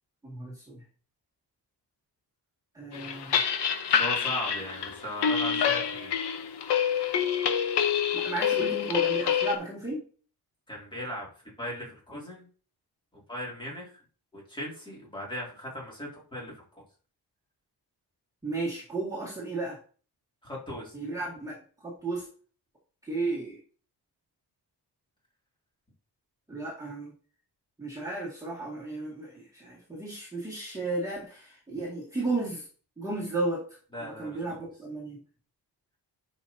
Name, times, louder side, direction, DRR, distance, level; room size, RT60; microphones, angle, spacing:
voice 1, 0.2-0.8 2.7-3.4 8.1-10.0 18.4-19.8 20.9-22.2 23.0-23.6 26.5-27.1 27.8-32.7 33.0-33.6 34.0-35.2, right 2 dB, 10° right, -6 dB, 2.1 m, -34 dB
sound 1, 2.9-9.6, left 8 dB, 75° left, 1.0 m, -27 dB
voice 2, 3.9-6.1 10.7-11.3 11.6-12.5 13.3-13.9 14.3-16.5 20.4-20.9 33.9-34.6, equal, 10° left, -3 dB, 2.6 m, -38 dB
9.6 x 5.5 x 2.8 m, 0.40 s
wide cardioid pair, 180°, 41 cm